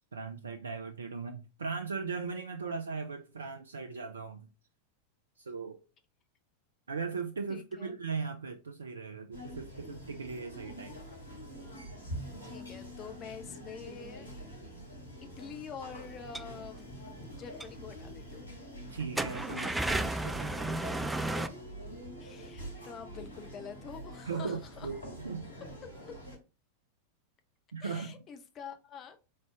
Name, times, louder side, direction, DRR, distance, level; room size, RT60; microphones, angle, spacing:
voice 1, 0.1-4.5 5.4-5.8 6.9-11.0 18.9-21.1 24.2-25.6 27.7-28.2, right 5 dB, 70° right, 0.4 m, -38 dB
voice 2, 7.5-8.0 12.4-14.3 15.4-16.8 17.3-18.5 22.2-24.9 26.0-26.1 27.8-29.2, left 7 dB, 30° left, 0.7 m, -46 dB
sound 1, 9.3-26.4, equal, 75° left, 1.5 m, -45 dB
sound 2, 16.1-16.5 17.2-17.3 17.6-17.7 18.1-18.2 19.0-21.5, right 2 dB, 5° right, 0.3 m, -33 dB
4.0 x 3.2 x 3.3 m
figure-of-eight pair, 90°, 0 cm